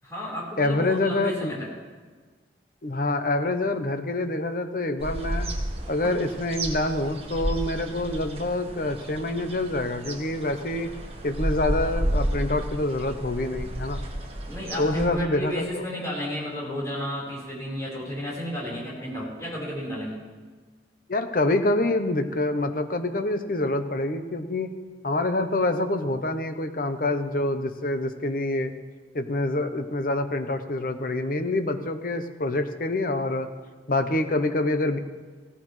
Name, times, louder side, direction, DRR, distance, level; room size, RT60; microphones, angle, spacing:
voice 1, 0.0-1.7 14.5-20.2, equal, 15° left, -6 dB, 4.3 m, -32 dB
voice 2, 0.6-1.5 2.8-5.5 5.9-10.9 11.2-14.0 14.8-15.8 21.1-24.7 25.0-28.7 29.1-33.5 33.9-35.0, left 2 dB, 50° left, 8 dB, 0.8 m, -26 dB
sound 1, 5.0-15.1, right 1 dB, 35° right, 1.5 m, -32 dB
17.0 x 14.5 x 3.2 m, 1.4 s
head